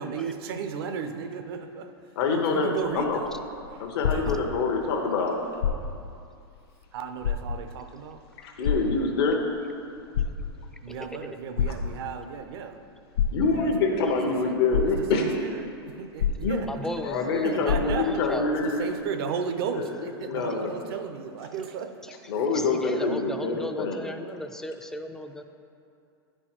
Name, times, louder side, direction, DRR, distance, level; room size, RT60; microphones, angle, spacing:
voice 1, 0.0-1.9 2.3-3.3 4.1-4.5 6.9-8.2 10.8-12.8 13.4-14.1 14.4-14.6 14.8-16.9 17.4-18.3 18.6-22.2, right 6 dB, 65° right, 8 dB, 0.7 m, -35 dB
voice 2, 2.2-2.7 2.9-3.2 3.8-5.4 8.4-9.4 13.3-15.3 16.4-16.6 17.0-18.8 19.7-20.7 22.3-24.0, left 4 dB, 65° left, 1 dB, 0.9 m, -26 dB
sound 1, 2.8-4.9 5.5-6.2 6.6-6.7 7.2-7.9 8.6-9.5 10.0-10.8 11.6-12.3 13.2-13.9 14.4-14.5 14.7-15.4 16.2-17.0 17.3-17.4 17.7-18.3 19.0-19.1, left 7 dB, 85° left, 0.5 m, -28 dB
voice 3, 14.0-14.4 16.7-18.6 22.0-22.1 22.5-25.4, left 1 dB, 5° left, 7 dB, 0.4 m, -36 dB
9.8 x 4.5 x 4.4 m, 2.5 s
hypercardioid pair, 115°, 14 cm